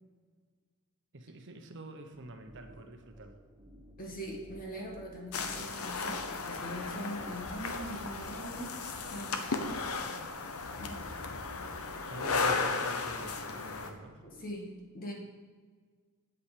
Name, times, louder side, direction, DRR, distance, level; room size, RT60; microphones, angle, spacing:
voice 1, 1.1-3.4 12.1-14.3, right 2 dB, 55° right, 5 dB, 1.0 m, -47 dB
sound 1, 2.1-14.4, right 1 dB, 20° right, 1.3 m, -56 dB
voice 2, 4.0-8.8 9.1-9.9 10.8-11.2 14.2-15.1, equal, 40° left, 0 dB, 1.8 m, -42 dB
sound 2, 5.3-13.9, left 4 dB, 75° left, 0.9 m, -35 dB
8.5 x 8.1 x 5.1 m, 1.5 s
head